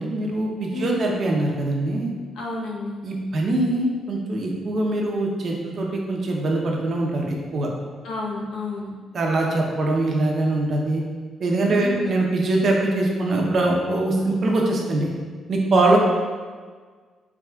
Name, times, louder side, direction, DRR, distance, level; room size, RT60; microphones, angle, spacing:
voice 1, 0.0-2.1 3.0-7.7 9.1-11.0 11.4-15.1 15.5-16.0, right 2 dB, 50° right, -1 dB, 0.8 m, -22 dB
voice 2, 0.7-1.1 2.3-3.0 8.0-8.9 11.7-12.1 15.9-16.0, left 2 dB, 80° left, -3 dB, 0.9 m, -31 dB
4.9 x 3.4 x 2.3 m, 1.5 s
cardioid pair, 90°, 0 cm